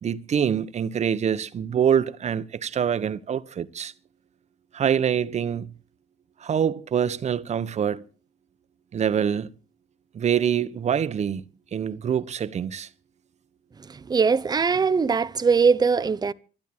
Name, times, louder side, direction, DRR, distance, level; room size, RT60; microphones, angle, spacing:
voice 1, 0.0-3.9 4.7-5.7 6.4-8.0 8.9-9.5 10.1-11.4 11.7-12.9, right 8 dB, 40° right, 1.1 m, -25 dB
voice 2, 14.1-16.3, right 5 dB, 25° right, 0.9 m, -21 dB
12.0 x 12.0 x 8.8 m
cardioid pair, 110°, 17 cm